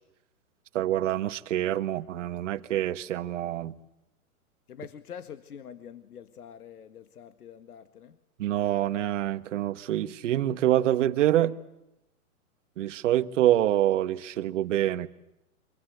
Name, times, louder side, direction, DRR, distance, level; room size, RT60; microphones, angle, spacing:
voice 1, 0.7-3.7 8.4-11.6 12.8-15.1, right 12 dB, 55° right, 1.6 m, -26 dB
voice 2, 4.7-8.2, left 8 dB, 90° left, 1.9 m, -45 dB
28.5 x 25.5 x 8.0 m
hypercardioid pair, 155°, 44 cm